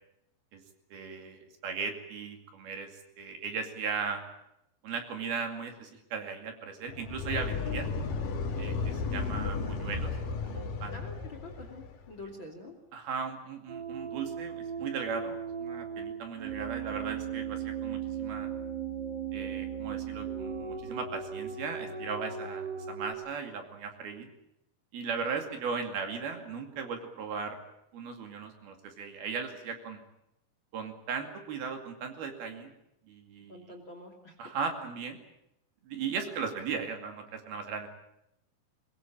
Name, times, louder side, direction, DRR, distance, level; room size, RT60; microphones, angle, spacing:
voice 1, 0.9-2.9 3.2-4.2 4.8-7.9 8.6-10.1 10.5-11.0 12.9-18.5 19.3-24.3 24.9-27.6 27.9-30.0 30.7-32.7 33.1-33.7 34.4-35.2 35.8-37.9, right 5 dB, 65° right, 5 dB, 4.1 m, -37 dB
sound 1, 6.9-12.1, left 4 dB, 55° left, 3.5 m, -34 dB
voice 2, 10.9-12.8 33.5-34.4, left 2 dB, 35° left, 5 dB, 2.7 m, -46 dB
sound 2, 13.7-23.1, right 7 dB, 40° right, 1.7 m, -37 dB
22.5 x 20.5 x 8.9 m, 0.83 s
omnidirectional pair, 5.1 m